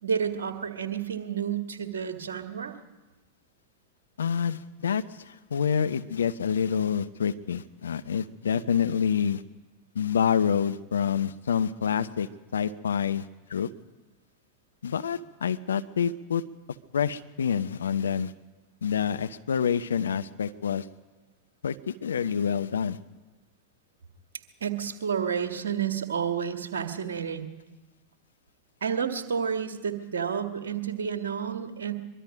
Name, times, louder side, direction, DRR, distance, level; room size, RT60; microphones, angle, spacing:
voice 1, 0.0-2.8 24.6-27.5 28.8-31.9, right 7 dB, 65° right, 7 dB, 1.9 m, -30 dB
voice 2, 4.2-9.4 9.9-13.7 14.8-16.4 16.9-18.3 18.8-20.9 21.6-23.0, left 7 dB, 70° left, 12 dB, 0.7 m, -27 dB
23.5 x 23.0 x 5.2 m, 1.2 s
figure-of-eight pair, 90°, 0 cm